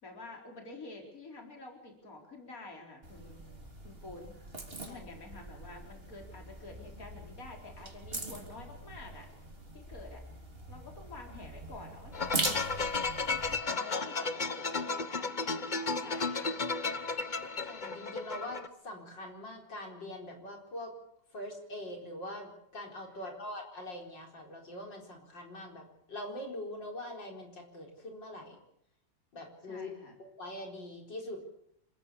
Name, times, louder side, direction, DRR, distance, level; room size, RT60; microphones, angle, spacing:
voice 1, 0.0-3.4 3.8-4.3 4.7-9.3 9.7-10.2 10.7-12.6 13.6-16.5 23.1-23.2 29.6-30.2, left 3 dB, 50° left, 2 dB, 4.6 m, -49 dB
sound 1, 3.0-13.5, right 2 dB, 30° right, 3.6 m, -41 dB
sound 2, 12.1-18.7, left 4 dB, 35° left, 0.9 m, -34 dB
voice 2, 17.7-20.9 21.3-25.8 26.1-28.6 29.3-29.9 30.2-31.4, left 1 dB, 85° left, 2 dB, 5.1 m, -43 dB
27.5 x 15.0 x 8.5 m, 0.76 s
omnidirectional pair, 1.9 m